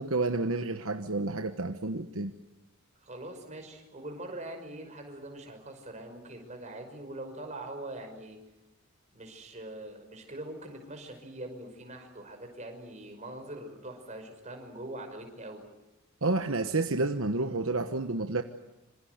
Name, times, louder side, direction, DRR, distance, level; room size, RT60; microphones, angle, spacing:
voice 1, 0.0-2.3 16.2-18.4, right 3 dB, 65° right, 7 dB, 1.2 m, -30 dB
voice 2, 3.0-8.4 9.1-15.6, right 1 dB, 30° right, 4 dB, 5.6 m, -43 dB
26.5 x 26.5 x 8.1 m, 0.95 s
head